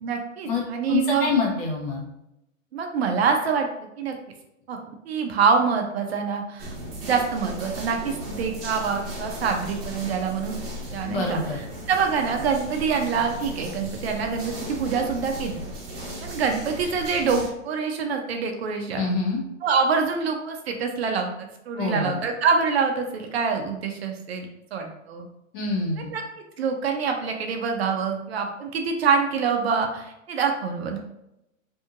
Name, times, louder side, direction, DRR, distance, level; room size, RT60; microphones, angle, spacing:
voice 1, 0.0-1.3 2.7-3.7 4.0-4.1 4.7-6.7 7.0-10.6 10.9-11.4 11.9-15.5 16.2-19.0 19.6-21.3 21.7-25.3 26.1-26.2 26.6-31.0, right 5 dB, 50° right, 4 dB, 0.4 m, -25 dB
voice 2, 0.9-2.0 11.1-11.6 18.9-19.4 21.8-22.2 25.5-26.1, left 4 dB, 40° left, -3 dB, 1.0 m, -26 dB
sound 1, 6.6-17.5, equal, 30° right, 1.0 m, -36 dB
2.7 x 2.5 x 2.5 m, 0.86 s
hypercardioid pair, 120°, 40 cm